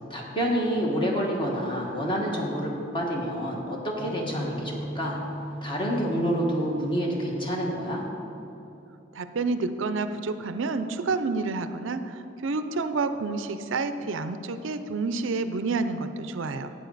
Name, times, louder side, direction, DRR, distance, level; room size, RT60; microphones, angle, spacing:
voice 1, 0.1-5.2 5.6-8.0, equal, 25° left, -2 dB, 1.6 m, -28 dB
sound 1, 4.0-8.9, equal, 60° left, 1.6 m, -39 dB
voice 2, 9.1-16.7, right 3 dB, 70° right, 10 dB, 0.5 m, -29 dB
12.5 x 8.7 x 4.0 m, 2.9 s
head